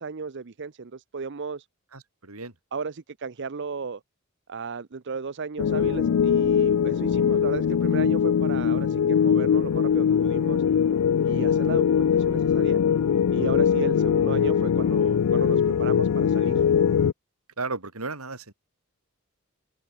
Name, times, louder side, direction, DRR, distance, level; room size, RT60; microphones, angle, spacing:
voice 1, 0.0-1.7 2.7-4.0 4.5-10.6 11.2-12.8 13.3-16.6, right 5 dB, 55° right, 0.7 m, -35 dB
voice 2, 1.9-2.6 13.7-13.8 17.6-18.5, right 3 dB, 80° right, 3.5 m, -34 dB
sound 1, 5.6-17.1, left 7 dB, 80° left, 0.4 m, -22 dB
head